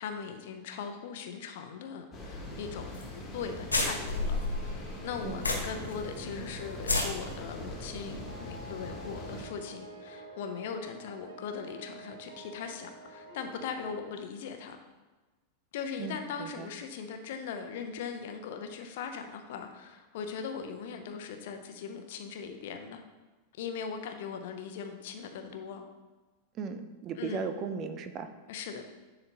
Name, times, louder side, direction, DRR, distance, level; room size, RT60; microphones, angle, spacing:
voice 1, 0.0-2.9 3.3-14.8 15.7-23.0 23.6-25.8 27.1-27.5 28.5-28.8, left 6 dB, 55° left, 6 dB, 0.7 m, -40 dB
sound 1, 2.1-9.5, equal, 20° left, 1.6 m, -42 dB
sound 2, 2.9-3.1 3.3-3.4 3.7-5.9 6.3-6.4 6.8-7.1, left 3 dB, 80° left, 0.9 m, -30 dB
sound 3, 3.8-14.1, right 2 dB, 85° right, 2.2 m, -49 dB
voice 2, 16.0-16.7 26.6-28.3, right 5 dB, 35° right, 9 dB, 0.5 m, -37 dB
10.0 x 3.9 x 2.9 m, 1.2 s
figure-of-eight pair, 90°, 0 cm